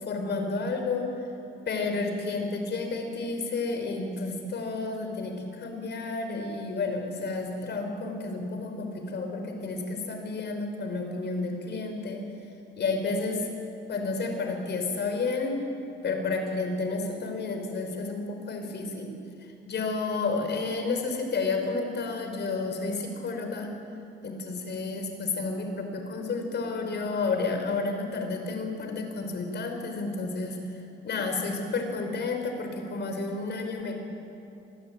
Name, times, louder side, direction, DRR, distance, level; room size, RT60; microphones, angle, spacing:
voice 1, 0.0-1.1 1.7-12.2 12.8-13.5 13.9-15.6 16.0-19.2 19.7-23.7 24.2-30.6 31.0-33.9, left 3 dB, 60° left, 4 dB, 5.5 m, -31 dB
26.0 x 21.0 x 9.2 m, 2.7 s
cardioid pair, 90°, 20 cm